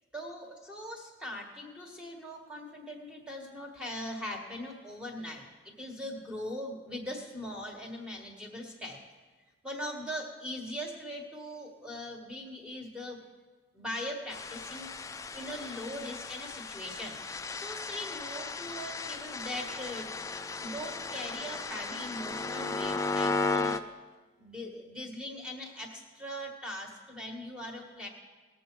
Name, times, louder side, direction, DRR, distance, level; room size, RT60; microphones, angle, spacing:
voice 1, 0.1-9.0 9.6-13.2 13.7-14.9 15.3-20.1 20.6-23.9 24.4-28.1, left 1 dB, 5° right, 0 dB, 1.5 m, -40 dB
sound 1, 14.3-23.8, left 3 dB, 15° left, 0.3 m, -35 dB
19.0 x 7.1 x 4.6 m, 1.4 s
head